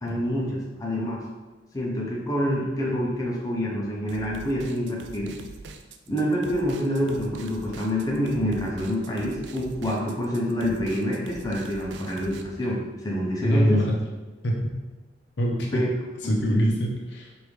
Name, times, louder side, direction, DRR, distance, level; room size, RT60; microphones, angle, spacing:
voice 1, 0.0-1.2 1.7-5.4 6.1-13.9 15.7-15.9 16.2-16.4, equal, 20° left, -4 dB, 0.6 m, -27 dB
sound 1, 4.1-12.4, right 4 dB, 70° right, 0.3 m, -43 dB
voice 2, 13.4-13.9 14.4-14.7 15.4-15.8 16.2-17.3, equal, 70° left, -1 dB, 0.7 m, -23 dB
5.0 x 2.6 x 3.1 m, 1.2 s
head